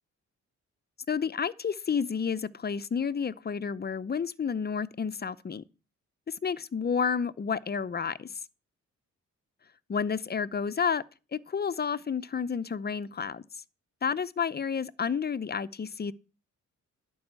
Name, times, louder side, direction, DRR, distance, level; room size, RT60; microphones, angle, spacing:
voice 1, 1.1-5.6 6.3-8.4 9.9-11.0 11.3-13.4 14.0-16.1, left 6 dB, 35° left, 0.7 m, -30 dB
11.5 x 5.5 x 8.2 m
cardioid pair, 100°, 30 cm